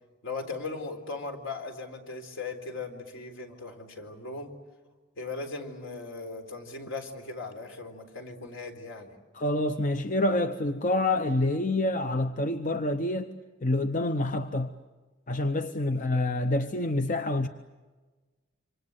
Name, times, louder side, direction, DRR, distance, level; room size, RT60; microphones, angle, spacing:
voice 1, 0.2-4.5 5.2-9.1 17.0-17.1, left 3 dB, 65° left, 3.9 m, -38 dB
voice 2, 9.3-13.3 13.6-14.7 15.3-17.5, left 1 dB, 40° left, 0.8 m, -27 dB
27.5 x 26.0 x 8.1 m
head